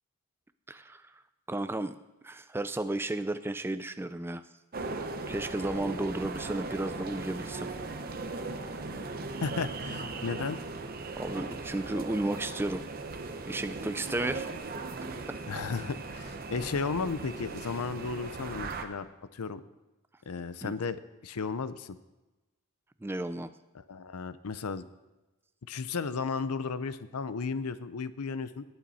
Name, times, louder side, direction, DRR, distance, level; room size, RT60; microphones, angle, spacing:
voice 1, 0.7-1.0 1.5-2.0 2.2-4.4 5.3-7.7 11.2-12.8 13.5-14.5 15.3-15.4 20.6-20.7 23.0-23.5, right 2 dB, 10° right, 11 dB, 0.3 m, -33 dB
sound 1, 4.7-18.8, right 3 dB, 40° right, 0.9 m, -38 dB
voice 2, 9.4-10.6 15.5-19.6 20.3-22.0 23.7-24.8 25.7-28.6, left 4 dB, 85° left, 14 dB, 0.6 m, -34 dB
19.0 x 9.0 x 4.2 m, 1.1 s
head